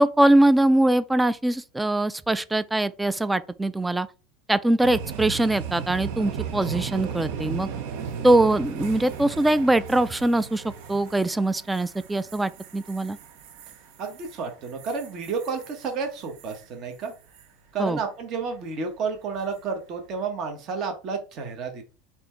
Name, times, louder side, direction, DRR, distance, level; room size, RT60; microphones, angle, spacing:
voice 1, 0.0-4.1 4.5-7.7 8.2-10.6 10.9-13.2 17.8-18.0, right 1 dB, 10° right, 0.3 m, -22 dB
sound 1, 4.8-16.7 17.0-17.4 19.4-19.7, right 7 dB, 70° right, 0.7 m, -36 dB
voice 2, 14.0-17.1 17.7-21.8, right 5 dB, 45° right, 1.1 m, -31 dB
4.2 x 2.8 x 4.3 m
supercardioid pair, 120°, 0 cm